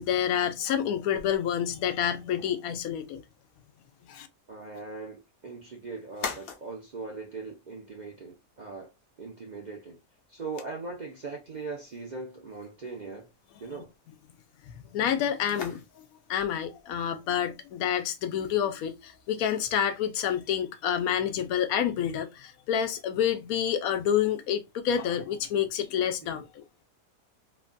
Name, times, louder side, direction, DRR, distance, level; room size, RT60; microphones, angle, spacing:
voice 1, 0.0-3.2 4.0-4.3 14.9-26.6, left 9 dB, 85° left, 1.0 m, -28 dB
sound 1, 1.1-19.6, left 5 dB, 60° left, 0.9 m, -48 dB
voice 2, 4.5-8.9 9.2-10.0 10.3-13.3 13.6-13.9 26.3-26.4, right 4 dB, 50° right, 0.5 m, -40 dB
3.1 x 2.2 x 2.4 m
omnidirectional pair, 1.5 m